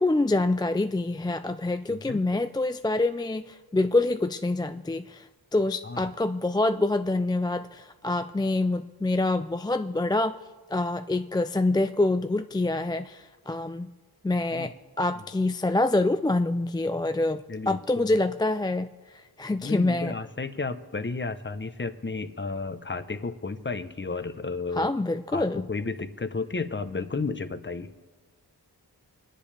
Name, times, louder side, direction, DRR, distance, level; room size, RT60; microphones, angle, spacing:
voice 1, 0.0-10.4 10.7-13.9 14.2-20.1 24.7-25.6, left 2 dB, 10° left, 9 dB, 0.3 m, -26 dB
voice 2, 1.9-2.2 5.8-6.1 14.5-14.7 17.5-18.1 19.6-24.9 25.3-27.9, left 4 dB, 30° left, 10 dB, 0.8 m, -33 dB
25.0 x 10.0 x 3.4 m, 1.3 s
wide cardioid pair, 80°, 40 cm